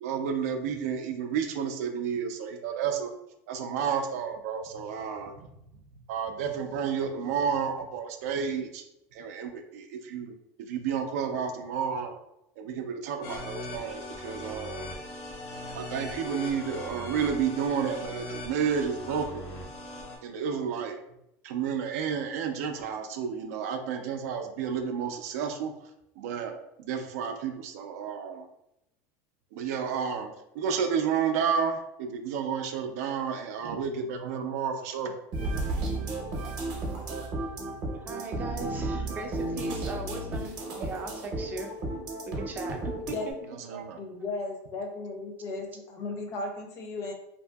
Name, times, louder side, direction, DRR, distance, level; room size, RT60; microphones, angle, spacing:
voice 1, 0.0-3.1 3.5-5.3 6.1-8.8 9.1-10.3 10.7-12.1 12.6-14.9 15.7-19.5 20.2-21.0 21.4-25.7 26.2-28.4 29.5-35.1 43.6-44.0, right 7 dB, 85° right, 6 dB, 0.4 m, -31 dB
sound 1, 13.2-20.2, left 1 dB, 80° left, 0.9 m, -39 dB
sound 2, 35.3-43.3, right 2 dB, 50° right, 0.7 m, -33 dB
voice 2, 37.9-41.8 42.3-43.3, right 3 dB, 20° right, 3 dB, 0.4 m, -38 dB
voice 3, 44.0-47.1, left 3 dB, 40° left, 4 dB, 0.5 m, -35 dB
2.6 x 2.6 x 2.2 m, 0.83 s
supercardioid pair, 150°, 8 cm